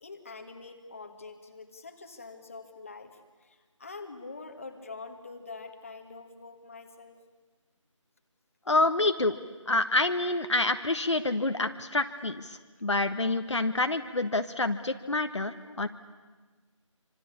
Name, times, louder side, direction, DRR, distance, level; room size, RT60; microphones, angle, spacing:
voice 1, 0.0-7.1, left 4 dB, 25° left, 5 dB, 1.8 m, -45 dB
voice 2, 8.7-9.4 9.7-15.9, left 2 dB, 60° left, 8 dB, 1.4 m, -27 dB
26.0 x 26.0 x 8.6 m, 1.3 s
figure-of-eight pair, 175°, 17 cm